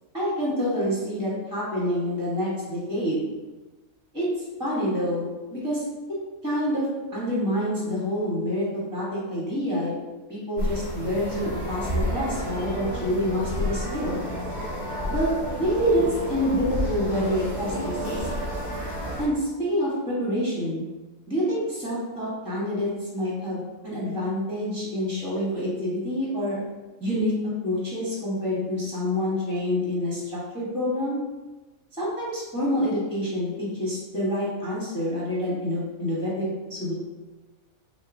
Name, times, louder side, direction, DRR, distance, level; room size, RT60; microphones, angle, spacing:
voice 1, 0.1-3.2 4.1-4.3 4.6-5.8 6.4-8.7 8.9-9.9 10.3-14.2 15.1-18.3 19.2-20.8 21.3-26.6 27.0-27.3 27.6-31.2 32.0-36.9, equal, 5° right, -7 dB, 1.0 m, -27 dB
sound 1, 10.6-19.3, equal, 50° left, 1.7 m, -30 dB
6.0 x 2.3 x 2.6 m, 1.2 s
omnidirectional pair, 1.4 m